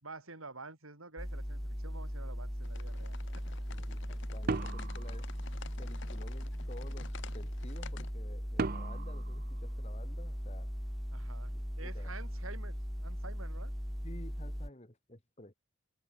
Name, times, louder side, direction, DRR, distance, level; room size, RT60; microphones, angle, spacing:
voice 1, 0.0-3.2 4.1-4.2 11.1-13.7, right 3 dB, 80° right, 5.6 m, -49 dB
sound 1, 1.2-14.7, equal, ahead, 1.2 m, -39 dB
sound 2, 2.6-8.1, left 5 dB, 60° left, 0.8 m, -51 dB
voice 2, 3.7-5.3 5.8-10.7 11.5-12.1 14.0-15.5, left 1 dB, 30° left, 3.2 m, -52 dB
sound 3, 4.5-6.0 8.6-10.4, right 4 dB, 45° right, 0.5 m, -38 dB
head